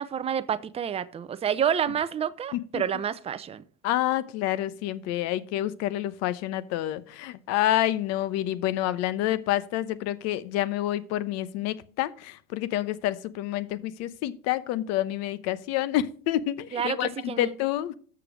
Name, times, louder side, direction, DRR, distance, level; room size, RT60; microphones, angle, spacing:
voice 1, 0.0-3.6 16.7-17.5, right 8 dB, 20° right, 0.6 m, -29 dB
voice 2, 2.5-2.8 3.8-17.1 17.4-17.9, left 13 dB, 60° left, 0.9 m, -28 dB
7.0 x 6.7 x 6.0 m
supercardioid pair, 115°, 30 cm